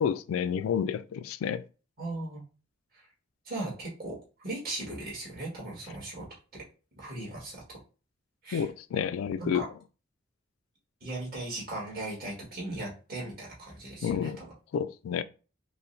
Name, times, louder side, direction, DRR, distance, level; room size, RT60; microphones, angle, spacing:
voice 1, 0.0-1.6 8.5-9.7 14.0-14.4 14.7-15.2, left 7 dB, 90° left, 0.3 m, -30 dB
voice 2, 2.0-2.4 3.4-4.2 4.4-6.3 6.5-6.6 7.0-7.8 8.4-8.7 9.4-9.6 11.0-14.5, right 2 dB, 50° right, 1.7 m, -38 dB
5.2 x 2.1 x 2.7 m
head